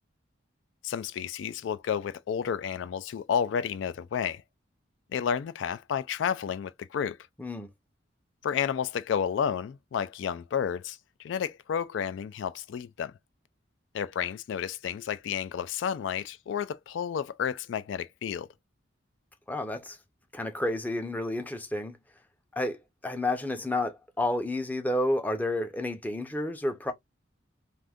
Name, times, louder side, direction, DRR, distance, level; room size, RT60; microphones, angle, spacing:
voice 1, 0.8-4.4 5.1-7.2 8.4-13.1 13.9-18.5, left 7 dB, 70° left, 0.3 m, -31 dB
voice 2, 19.5-20.0 20.3-22.0 22.6-26.9, left 1 dB, 10° left, 0.5 m, -30 dB
2.6 x 2.4 x 3.5 m
head